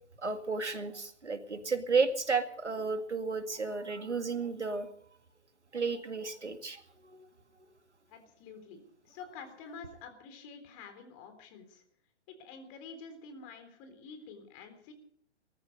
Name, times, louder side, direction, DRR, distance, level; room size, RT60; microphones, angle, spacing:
voice 1, 0.2-4.9 5.7-6.8, right 4 dB, 85° right, 8 dB, 2.2 m, -32 dB
voice 2, 8.1-11.8 12.3-14.9, left 5 dB, 30° left, 8 dB, 3.7 m, -49 dB
19.0 x 14.5 x 5.2 m, 0.63 s
figure-of-eight pair, 125°, 34 cm